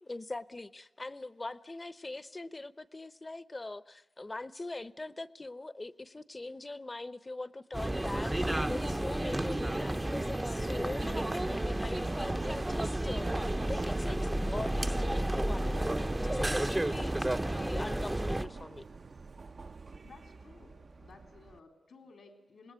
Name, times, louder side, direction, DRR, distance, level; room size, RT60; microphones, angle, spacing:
voice 1, 0.0-13.3 13.7-18.9, left 2 dB, 30° left, 0.9 m, -42 dB
sound 1, 7.7-18.5, right 1 dB, 15° right, 0.8 m, -32 dB
Subway metro underground, 9.6-21.6, right 4 dB, 55° right, 0.9 m, -45 dB
voice 2, 20.0-22.7, left 4 dB, 85° left, 3.9 m, -56 dB
26.5 x 20.0 x 9.0 m
wide cardioid pair, 90°, 0 cm